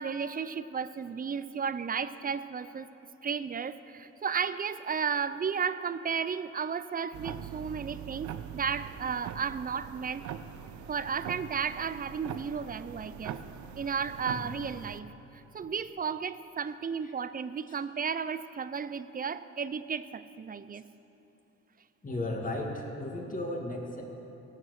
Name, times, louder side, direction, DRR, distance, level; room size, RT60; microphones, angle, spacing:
voice 1, 0.0-2.9 3.2-10.3 10.9-13.4 13.8-15.1 15.3-20.9, right 6 dB, 30° right, 14 dB, 0.5 m, -33 dB
sound 1, 7.1-15.0, right 9 dB, 75° right, 0.6 m, -42 dB
voice 2, 22.0-24.0, left 1 dB, 25° left, 0 dB, 2.2 m, -35 dB
17.0 x 7.4 x 6.5 m, 2.9 s
cardioid pair, 90°, 30 cm